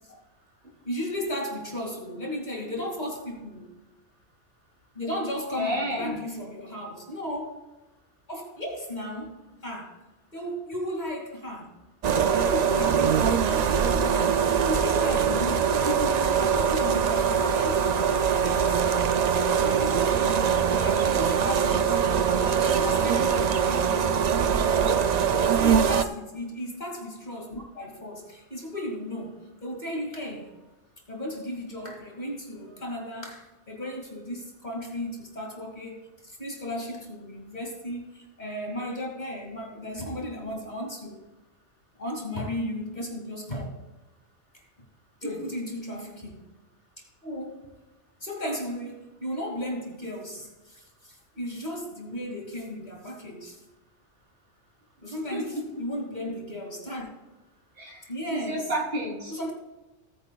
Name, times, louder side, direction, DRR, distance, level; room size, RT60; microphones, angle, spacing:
voice 1, 0.8-3.7 4.9-7.6 8.3-10.0 10.3-11.8 12.1-15.8 16.4-18.8 19.3-21.9 22.6-24.2 25.4-30.5 31.1-41.2 42.0-43.8 45.2-46.5 47.0-47.7 48.2-53.6 55.0-57.1 58.1-58.6 59.3-59.5, left 1 dB, 35° left, 0 dB, 2.2 m, -35 dB
voice 2, 5.5-6.2 15.8-16.1 25.6-25.8 45.2-45.4 55.3-55.6 57.8-59.4, equal, 45° right, -2 dB, 3.3 m, -31 dB
sound 1, 12.0-26.1, right 7 dB, 65° right, 0.4 m, -23 dB
18.0 x 9.7 x 2.3 m, 1.1 s
omnidirectional pair, 1.3 m